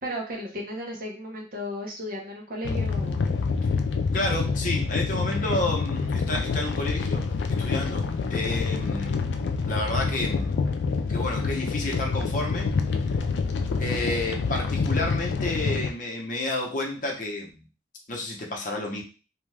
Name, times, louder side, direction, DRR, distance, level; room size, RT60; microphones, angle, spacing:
voice 1, 0.0-3.4, equal, 50° right, 0 dB, 0.8 m, -35 dB
sound 1, 2.6-15.9, left 4 dB, 85° left, 0.4 m, -27 dB
voice 2, 4.1-7.2 7.6-8.0 8.3-9.2 9.6-10.6 11.1-12.7 13.8-17.6 18.1-19.0, left 2 dB, 45° left, 0 dB, 0.7 m, -30 dB
2.6 x 2.3 x 3.2 m, 0.34 s
head